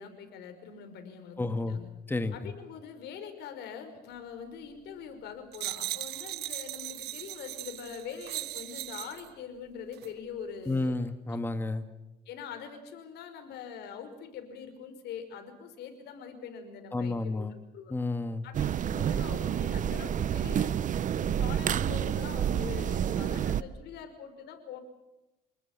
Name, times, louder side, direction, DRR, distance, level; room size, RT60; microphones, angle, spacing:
voice 1, 0.0-1.9 2.3-11.0 12.3-17.4 17.7-18.0 18.4-20.7 21.1-24.8, left 7 dB, 80° left, 7 dB, 5.5 m, -43 dB
voice 2, 1.4-1.8 2.1-2.4 10.7-11.9 16.9-17.5 17.9-18.4, left 2 dB, 10° left, 9 dB, 1.8 m, -31 dB
sound 1, 5.5-9.3 9.9-10.1, right 16 dB, 75° right, 0.9 m, -38 dB
sound 2, 18.5-23.6, right 9 dB, 50° right, 0.9 m, -29 dB
28.0 x 20.5 x 7.4 m, 0.99 s
cardioid pair, 110°, 17 cm